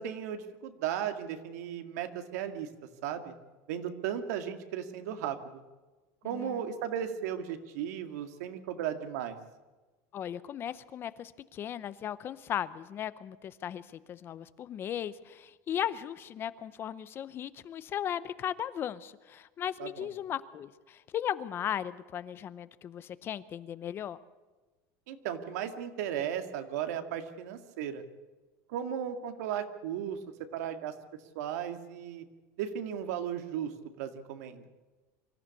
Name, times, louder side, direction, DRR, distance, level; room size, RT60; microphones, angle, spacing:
voice 1, 0.0-2.7 3.0-3.3 3.7-5.6 6.2-9.4 19.8-20.1 25.1-28.0 28.7-30.2 30.5-30.9 31.4-32.2 32.6-33.7 34.0-34.7, right 9 dB, 85° right, 8 dB, 2.1 m, -35 dB
voice 2, 6.2-6.6 10.1-24.2, left 10 dB, 25° left, 16 dB, 0.6 m, -37 dB
24.5 x 14.0 x 8.3 m, 1.2 s
cardioid pair, 170°, 8 cm